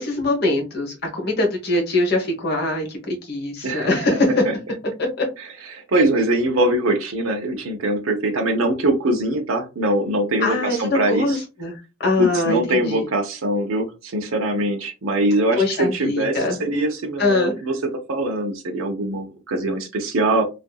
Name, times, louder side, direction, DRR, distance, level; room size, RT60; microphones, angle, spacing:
voice 1, 0.0-4.4 5.0-5.2 10.4-13.0 15.6-16.6 17.2-17.5, left 2 dB, 50° left, 2 dB, 1.0 m, -22 dB
voice 2, 3.6-4.0 4.4-4.5 5.4-11.4 12.2-17.8 18.1-20.4, right 1 dB, 75° right, 3 dB, 0.6 m, -22 dB
2.7 x 2.5 x 2.2 m, 0.28 s
head